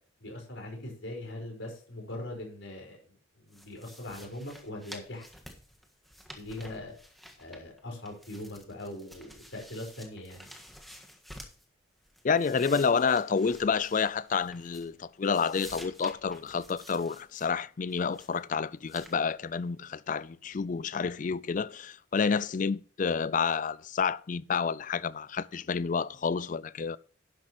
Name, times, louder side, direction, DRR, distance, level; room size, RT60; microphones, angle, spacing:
voice 1, 0.2-5.2 6.4-6.9 7.4-10.5, left 1 dB, 65° left, 4.9 m, -41 dB
Leafing through papers, 3.5-11.6 12.0-15.0 15.2-17.5 17.9-18.4 18.9-19.2, equal, ahead, 1.5 m, -51 dB
voice 2, 12.2-27.0, left 5 dB, 40° left, 0.3 m, -29 dB
12.0 x 10.5 x 3.0 m
head